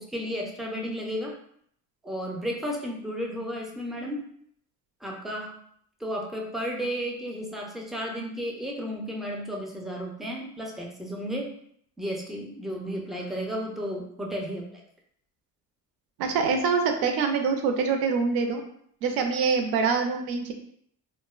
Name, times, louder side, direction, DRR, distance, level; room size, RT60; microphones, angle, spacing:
voice 1, 0.0-1.3 2.0-4.2 5.0-5.6 6.0-11.5 12.0-14.7, equal, ahead, -1 dB, 0.3 m, -33 dB
voice 2, 16.2-18.6 19.0-20.5, right 5 dB, 70° right, 4 dB, 0.5 m, -25 dB
2.5 x 2.1 x 2.3 m, 0.66 s
cardioid pair, 100°, 38 cm